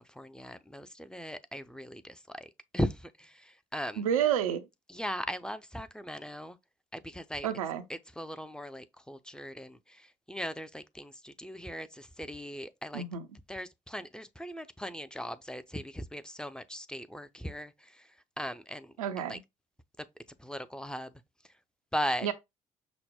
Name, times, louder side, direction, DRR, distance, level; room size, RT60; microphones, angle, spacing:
voice 1, 0.0-2.5 2.7-3.3 3.7-4.0 5.0-6.6 6.9-7.5 8.2-9.8 10.3-13.0 13.5-17.7 18.4-18.9 19.3-19.4 20.4-21.1 21.9-22.3, equal, 5° left, 0.5 m, -38 dB
voice 2, 3.9-4.7 7.4-7.8 12.9-13.3 19.0-19.4 22.2-22.3, right 9 dB, 85° right, 0.4 m, -29 dB
5.8 x 2.1 x 3.5 m
hypercardioid pair, 45°, 17 cm